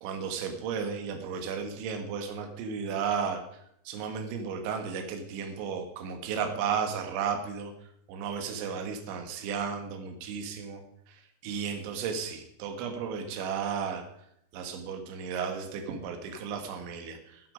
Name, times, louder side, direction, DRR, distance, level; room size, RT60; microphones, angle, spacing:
voice 1, 0.0-3.4 3.9-7.7 8.1-10.8 11.1-14.0 14.5-17.5, right 6 dB, 75° right, 5 dB, 3.9 m, -34 dB
19.5 x 8.2 x 5.1 m, 0.73 s
omnidirectional pair, 5.4 m